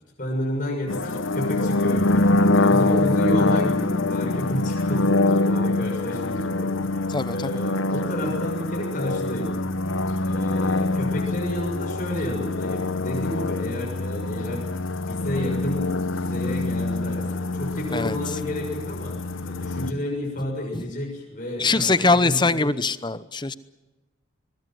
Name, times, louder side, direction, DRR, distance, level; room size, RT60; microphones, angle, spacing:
voice 1, 0.2-2.3 2.6-9.7 10.2-14.6 14.9-19.2 19.5-22.7, equal, 40° left, -1 dB, 6.7 m, -30 dB
sound 1, 0.9-19.9, left 2 dB, 75° left, 0.9 m, -24 dB
voice 2, 7.1-7.5 17.9-18.2 20.7-20.8 21.6-23.5, left 3 dB, 20° left, 15 dB, 0.8 m, -22 dB
23.0 x 21.5 x 7.9 m, 1.1 s
head